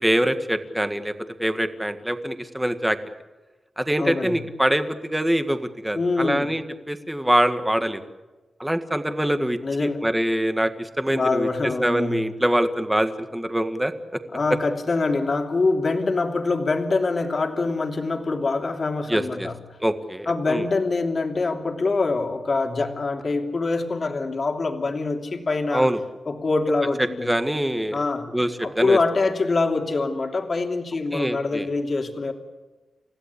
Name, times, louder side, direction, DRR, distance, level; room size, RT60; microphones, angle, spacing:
voice 1, 0.0-1.1 1.4-3.0 3.8-8.0 8.6-11.5 11.8-14.2 19.1-19.5 19.8-20.7 25.7-26.0 27.0-28.0 28.3-29.0 31.1-31.7, right 1 dB, 5° right, 9 dB, 1.7 m, -24 dB
voice 2, 4.0-4.4 5.9-6.5 9.6-10.0 11.1-12.2 14.3-19.5 20.3-25.9 26.3-27.3 27.9-28.3 28.6-32.3, left 3 dB, 40° left, 4 dB, 3.0 m, -24 dB
30.0 x 16.0 x 8.4 m, 1.2 s
wide cardioid pair, 120°, 0 cm